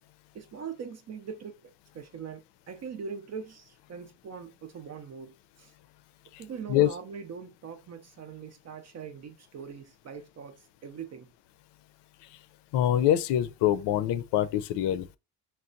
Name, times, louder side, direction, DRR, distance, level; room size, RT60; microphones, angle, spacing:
voice 1, 0.3-2.4 2.7-5.7 6.4-11.3, right 6 dB, 35° right, 0.5 m, -42 dB
voice 2, 12.7-15.2, left 11 dB, 65° left, 0.5 m, -25 dB
5.8 x 2.1 x 2.5 m
cardioid pair, 100°, 46 cm